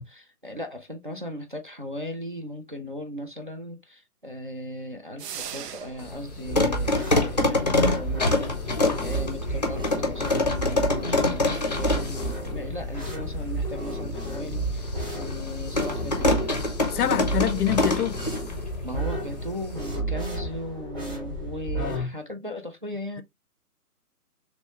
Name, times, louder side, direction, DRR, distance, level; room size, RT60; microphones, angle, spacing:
voice 1, 0.0-16.5 17.0-17.6 18.8-23.2, left 1 dB, 35° right, 0.4 m, -37 dB
sound 1, 5.2-6.2, right 8 dB, 85° right, 0.6 m, -37 dB
sound 2, 6.0-20.0, left 2 dB, 30° left, 0.5 m, -27 dB
sound 3, 6.4-22.0, right 1 dB, 15° right, 0.9 m, -32 dB
voice 2, 16.9-18.2 21.8-22.1, left 10 dB, 75° left, 0.6 m, -26 dB
3.1 x 2.9 x 2.9 m
hypercardioid pair, 155°, 46 cm